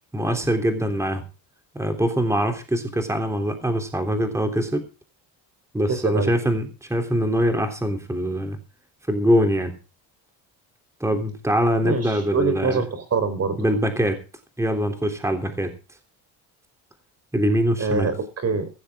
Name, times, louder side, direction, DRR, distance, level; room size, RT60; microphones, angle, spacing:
voice 1, 0.1-1.2 1.7-4.8 5.7-8.6 9.1-9.7 11.0-12.8 13.6-14.2 14.6-15.7 17.3-18.1, equal, 5° right, 7 dB, 3.3 m, -23 dB
voice 2, 5.9-6.3 11.8-13.7 17.8-18.7, right 4 dB, 40° right, 12 dB, 4.3 m, -25 dB
16.5 x 15.0 x 3.7 m, 0.33 s
cardioid pair, 110°, 39 cm